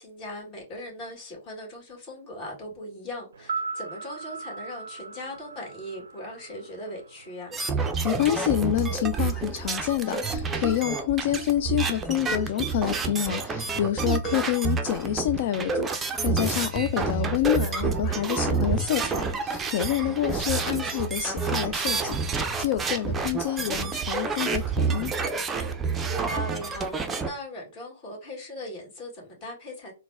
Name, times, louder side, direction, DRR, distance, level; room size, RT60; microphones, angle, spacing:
voice 1, 0.0-7.5 20.1-21.0 26.1-29.9, left 1 dB, 30° left, 1.9 m, -39 dB
sound 1, 3.3-7.5 7.8-7.9, right 4 dB, 75° right, 0.4 m, -38 dB
sound 2, 7.5-27.3, right 4 dB, 15° right, 0.5 m, -28 dB
voice 2, 8.0-25.1, left 12 dB, 50° left, 0.3 m, -28 dB
3.9 x 2.1 x 3.5 m
hypercardioid pair, 120°, 0 cm